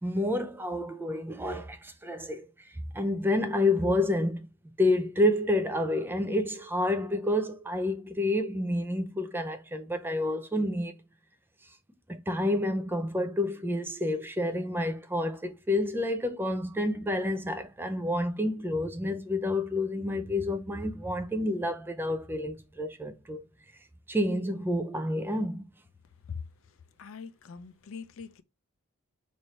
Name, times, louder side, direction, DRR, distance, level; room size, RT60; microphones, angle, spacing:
voice 1, 0.0-2.5 2.9-4.5 4.8-10.9 12.1-23.4 24.1-25.7, left 1 dB, 10° right, 0.4 m, -29 dB
voice 2, 27.0-28.4, left 6 dB, 65° left, 0.4 m, -41 dB
3.2 x 2.6 x 4.2 m
head